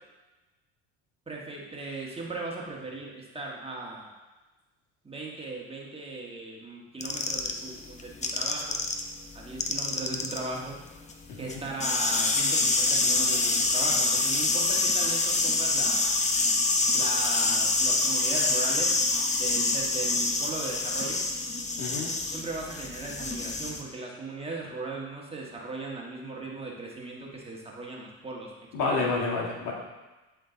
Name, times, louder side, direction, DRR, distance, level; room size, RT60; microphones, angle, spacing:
voice 1, 1.3-4.1 5.0-8.8 9.3-10.7 11.4-16.0 16.9-21.2 22.3-28.5 28.8-28.9, right 3 dB, 20° right, -3 dB, 1.6 m, -38 dB
sound 1, 7.0-9.0 9.3-23.8, left 3 dB, 20° left, 0.8 m, -26 dB
voice 2, 11.3-11.6 21.8-22.1 28.7-29.7, left 3 dB, 65° left, -2 dB, 1.8 m, -29 dB
11.0 x 3.8 x 3.9 m, 1.1 s
supercardioid pair, 80°, 32 cm